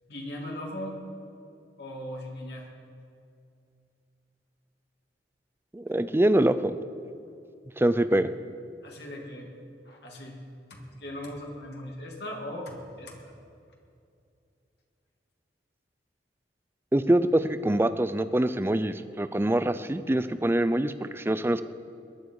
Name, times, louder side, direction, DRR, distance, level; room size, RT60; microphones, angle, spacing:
voice 1, 0.1-1.0 1.8-2.7 8.8-9.5 9.8-10.4 10.7-13.3, left 1 dB, 65° left, -1 dB, 2.5 m, -39 dB
voice 2, 5.7-6.7 7.8-8.3 16.9-21.6, right 1 dB, 15° right, 12 dB, 0.4 m, -24 dB
21.0 x 10.5 x 4.8 m, 2.5 s
head